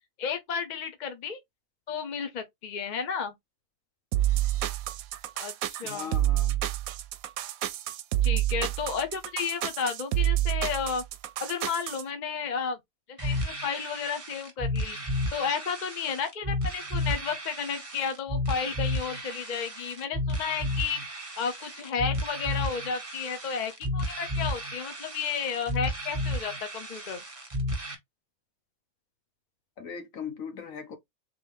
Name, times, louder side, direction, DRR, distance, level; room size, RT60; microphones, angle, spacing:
voice 1, 0.2-1.4 1.9-3.3 5.4-6.1 8.2-11.0 11.4-12.8 13.1-15.0 15.3-21.0 21.4-27.2, left 6 dB, 40° left, 0.7 m, -32 dB
sound 1, 4.1-12.0, right 14 dB, 75° right, 0.9 m, -28 dB
voice 2, 5.8-6.6 29.8-30.9, left 6 dB, 65° left, 1.5 m, -39 dB
sound 2, 13.2-27.9, left 1 dB, 25° right, 1.2 m, -32 dB
3.9 x 3.1 x 3.4 m
omnidirectional pair, 1.6 m